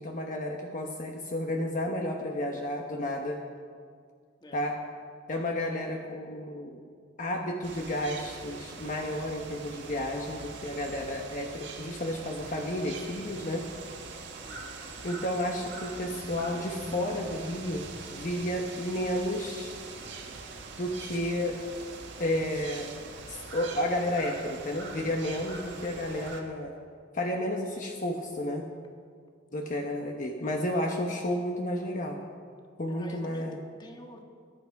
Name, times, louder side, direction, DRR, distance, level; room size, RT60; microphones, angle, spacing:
voice 1, 0.0-3.4 4.5-4.7 5.3-6.8 7.2-13.6 15.0-17.8 18.1-19.7 20.8-21.6 22.2-22.9 23.3-26.7 27.1-28.6 29.5-32.2 32.8-33.6, left 1 dB, 45° left, 1 dB, 1.0 m, -32 dB
sound 1, 7.6-26.4, right 3 dB, 70° right, 1.8 m, -43 dB
voice 2, 14.4-14.8 24.4-24.5 32.9-34.2, equal, 25° left, 2 dB, 1.5 m, -48 dB
sound 2, 15.9-18.9, equal, 40° right, 1.6 m, -46 dB
21.0 x 10.5 x 4.7 m, 2.1 s
head